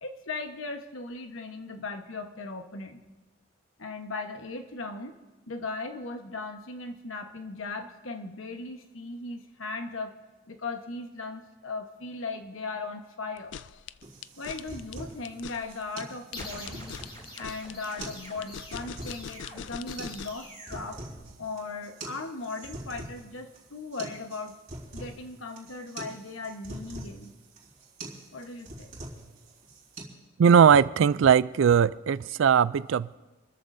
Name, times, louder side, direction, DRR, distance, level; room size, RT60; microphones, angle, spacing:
voice 1, 0.0-3.0 3.8-5.1 5.5-10.2 10.5-13.6 14.4-17.0 17.4-21.0 21.4-24.6 24.9-27.3 28.3-28.9, left 3 dB, 85° left, 5 dB, 1.2 m, -38 dB
sound 1, 13.4-20.5, left 8 dB, 60° left, 0.3 m, -42 dB
sound 2, 14.0-30.0, right 2 dB, 40° right, 3.8 m, -44 dB
sound 3, 16.3-21.8, equal, 25° left, 6.4 m, -46 dB
voice 2, 30.4-33.1, right 7 dB, 70° right, 18 dB, 0.3 m, -20 dB
27.0 x 14.0 x 2.7 m, 1.2 s
head